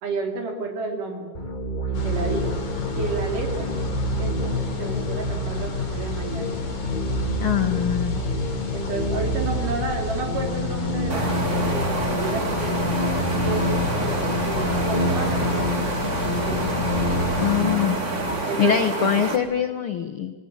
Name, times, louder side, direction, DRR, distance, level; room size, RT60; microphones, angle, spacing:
voice 1, 0.0-1.3 1.8-2.6 3.0-3.7 4.2-6.6 8.7-12.8 13.4-16.7 18.4-18.9, right 3 dB, 65° right, 3 dB, 4.6 m, -31 dB
sound 1, 1.3-18.4, equal, 20° left, 1.2 m, -28 dB
sound 2, 1.9-18.3, left 5 dB, 45° left, 4.2 m, -31 dB
voice 2, 7.4-8.2 17.4-18.0 18.6-20.3, left 9 dB, 80° left, 8 dB, 1.2 m, -23 dB
sound 3, 11.1-19.4, right 3 dB, 30° right, 1.6 m, -28 dB
26.5 x 19.5 x 8.6 m, 1.4 s
omnidirectional pair, 4.0 m